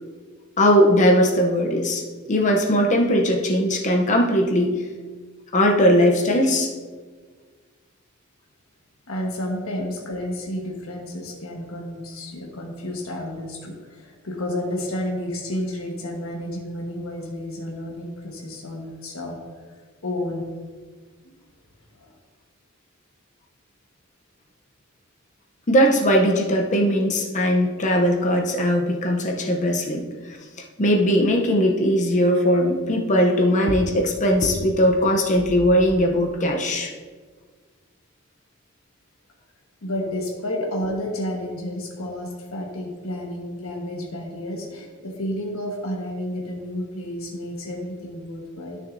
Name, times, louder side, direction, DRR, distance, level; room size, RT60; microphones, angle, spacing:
voice 1, 0.6-2.0 2.3-4.7 5.5-6.7 25.7-30.1 30.8-36.9, equal, 35° left, 2 dB, 0.7 m, -19 dB
voice 2, 9.1-19.4 20.0-20.4 21.2-21.3 21.9-22.1 39.8-48.8, left 1 dB, 90° left, -1 dB, 1.3 m, -31 dB
12.0 x 6.5 x 2.6 m, 1.5 s
head